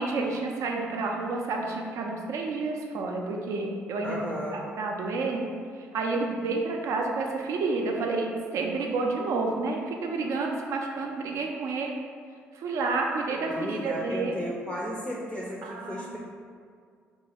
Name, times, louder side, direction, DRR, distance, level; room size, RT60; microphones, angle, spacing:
voice 1, 0.0-4.3 4.5-5.5 5.7-8.3 8.5-11.9 12.5-14.4 15.6-16.2, right 3 dB, 60° right, 1 dB, 0.4 m, -30 dB
voice 2, 4.0-4.7 13.5-16.2, equal, 10° left, -4 dB, 0.5 m, -34 dB
3.0 x 2.2 x 2.8 m, 2.1 s
hypercardioid pair, 50°, 6 cm